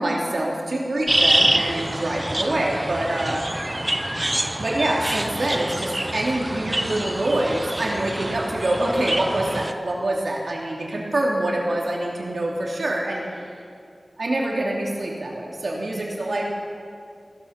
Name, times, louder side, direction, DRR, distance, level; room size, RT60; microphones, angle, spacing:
voice 1, 0.0-3.4 4.6-13.5 14.2-16.5, right 1 dB, 75° right, -2 dB, 2.9 m, -25 dB
sound 1, 1.1-9.7, right 1 dB, 25° right, 0.7 m, -26 dB
17.0 x 12.5 x 5.9 m, 2.3 s
wide cardioid pair, 60°, 0 cm